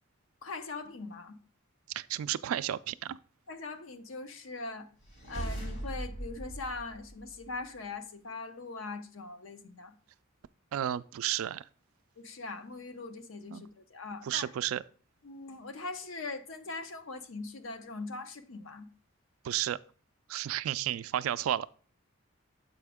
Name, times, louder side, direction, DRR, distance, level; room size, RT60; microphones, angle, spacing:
voice 1, 0.4-1.4 3.5-4.9 5.3-9.9 12.2-14.5 15.2-18.9, left 3 dB, 70° left, 0.7 m, -41 dB
voice 2, 1.9-3.2 10.7-11.6 13.5-13.6 14.2-14.8 19.4-19.8 20.3-21.8, right 11 dB, 90° right, 0.3 m, -32 dB
sound 1, 5.0-7.8, right 1 dB, 50° left, 1.8 m, -40 dB
7.2 x 5.0 x 3.5 m
head